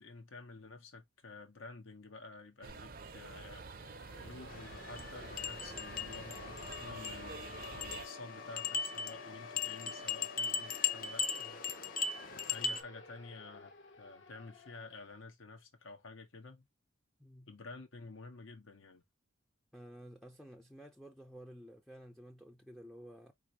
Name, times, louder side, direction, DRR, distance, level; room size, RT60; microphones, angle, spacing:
voice 1, 0.0-3.6 4.1-11.6 12.5-13.7 14.0-16.6 17.5-19.0, left 3 dB, 80° left, 1.6 m, -51 dB
sound 1, 2.6-8.1, right 4 dB, 45° right, 0.6 m, -48 dB
Siren, 2.7-2.8 3.1-15.1, left 4 dB, 65° left, 1.3 m, -52 dB
sound 2, 4.5-12.8, left 6 dB, 45° left, 0.7 m, -39 dB
voice 2, 17.2-17.5 19.7-23.3, equal, ahead, 0.5 m, -52 dB
4.5 x 3.7 x 3.0 m
head